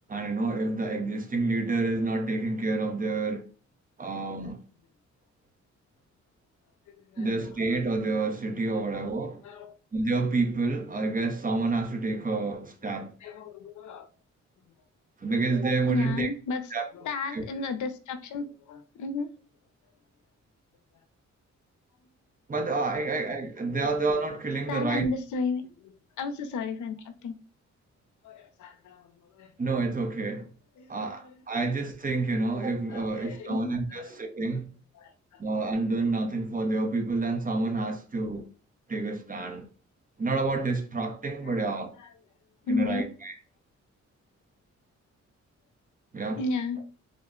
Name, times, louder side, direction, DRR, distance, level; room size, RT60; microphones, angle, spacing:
voice 1, 0.1-3.4 4.0-4.6 7.2-9.4 9.9-13.1 15.2-16.3 16.7-16.8 17.3-17.4 22.5-25.1 29.6-30.5 30.9-34.7 35.4-38.4 38.9-39.6 40.2-41.9 42.7-43.3 46.1-46.4, right 3 dB, 30° right, 0.7 m, -28 dB
voice 2, 6.9-7.3 8.7-8.9 9.4-9.8 13.2-14.1 14.8-14.9 15.9-19.3 22.9-23.1 24.7-27.4 28.2-29.6 30.8-31.4 32.6-34.2 34.9-35.4 41.4-41.7 42.0-42.1 42.6-43.1 46.4-46.8, left 3 dB, 85° left, 0.6 m, -34 dB
3.7 x 2.1 x 3.6 m
cardioid pair, 110°, 29 cm